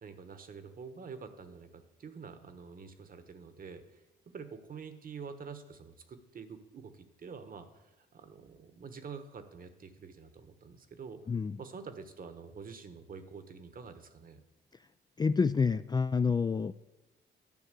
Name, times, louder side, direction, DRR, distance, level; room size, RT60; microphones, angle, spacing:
voice 1, 0.0-4.0 4.3-11.2 11.6-14.4, right 5 dB, 45° right, 10 dB, 1.2 m, -47 dB
voice 2, 11.3-11.6 15.2-16.7, left 5 dB, 20° left, 12 dB, 0.3 m, -28 dB
11.0 x 5.8 x 8.2 m, 0.98 s
cardioid pair, 90°, 20 cm